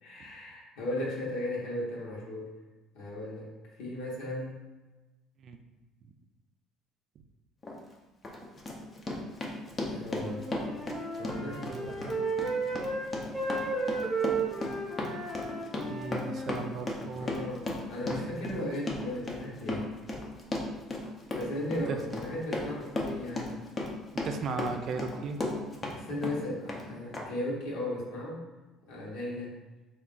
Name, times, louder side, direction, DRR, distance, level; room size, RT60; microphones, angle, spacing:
voice 1, 0.0-2.5 2.9-3.5 3.8-4.7 9.9-10.5 11.2-12.0 17.2-19.9 21.3-23.5 25.2-25.7 25.9-28.4 28.9-29.6, left 1 dB, 75° left, -4 dB, 1.0 m, -36 dB
Run, 7.6-7.8 8.2-26.0 26.2-26.8 27.1-27.2, left 2 dB, 25° left, 0.5 m, -35 dB
Wind instrument woodwind instrument, 10.2-13.1 13.3-16.6, right 3 dB, 5° right, 0.9 m, -34 dB
voice 2, 11.7-12.2 15.9-17.3 21.9-22.0 24.1-25.4, right 4 dB, 45° right, 6 dB, 0.3 m, -36 dB
3.5 x 2.4 x 3.7 m, 1.2 s
cardioid pair, 140°, 0 cm